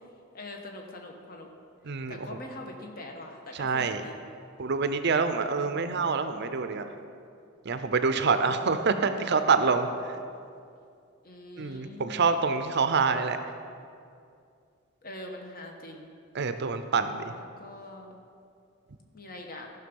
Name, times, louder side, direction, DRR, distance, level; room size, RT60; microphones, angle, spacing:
voice 1, 0.3-1.5 2.1-4.2 5.5-5.9 8.4-10.2 11.2-12.6 13.0-13.4 15.0-16.1 17.4-18.2 19.1-19.7, left 1 dB, 45° left, 2 dB, 1.2 m, -44 dB
voice 2, 3.6-4.0 4.6-6.8 7.7-9.9 11.6-13.4 16.3-17.3, right 4 dB, 55° right, 9 dB, 0.5 m, -26 dB
14.5 x 6.0 x 5.3 m, 2.4 s
head